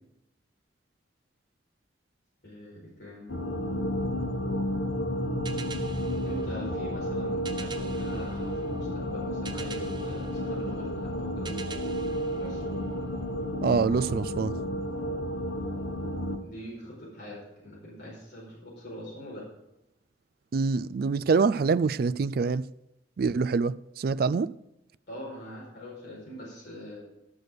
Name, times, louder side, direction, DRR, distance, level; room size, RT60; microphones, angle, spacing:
voice 1, 2.4-3.4 6.2-11.5 12.3-12.6 16.4-19.5 25.1-27.0, equal, 55° left, 4.9 m, -43 dB
sound 1, 3.3-16.4, equal, 75° left, 1.1 m, -31 dB
sound 2, 5.4-13.3, right 5 dB, 25° right, 0.8 m, -47 dB
voice 2, 13.6-14.5 20.5-22.6 23.2-24.5, right 4 dB, 50° right, 0.3 m, -25 dB
12.5 x 6.6 x 6.4 m
head